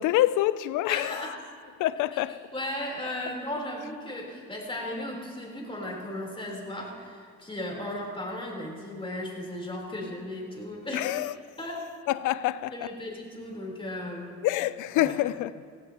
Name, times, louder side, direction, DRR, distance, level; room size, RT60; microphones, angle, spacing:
voice 1, 0.0-1.3 1.8-2.4 10.9-11.3 12.1-12.7 14.4-15.5, left 15 dB, 85° left, 0.5 m, -26 dB
voice 2, 0.9-1.4 2.1-11.1 11.6-11.9 12.7-14.4 15.0-15.2, left 1 dB, 15° left, 3.6 m, -36 dB
16.5 x 16.5 x 2.9 m
cardioid pair, 90°, 30 cm